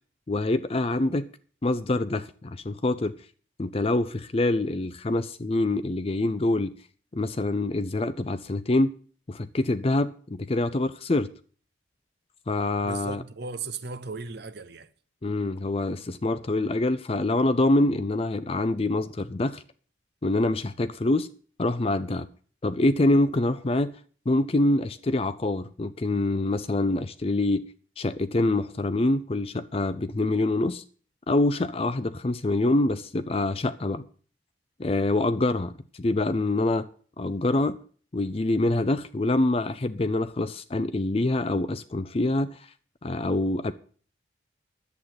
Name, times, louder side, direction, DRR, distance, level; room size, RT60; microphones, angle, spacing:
voice 1, 0.3-1.3 1.6-3.2 3.6-6.7 7.1-8.9 9.3-11.3 12.5-13.2 15.2-19.6 20.2-21.3 21.6-22.3 22.6-24.0 24.3-27.6 28.0-30.8 31.3-34.0 34.8-36.9 37.2-37.8 38.1-42.6 43.0-43.7, left 2 dB, 30° left, 0.5 m, -25 dB
voice 2, 12.8-14.9, right 4 dB, 60° right, 0.9 m, -36 dB
11.0 x 8.2 x 7.8 m
head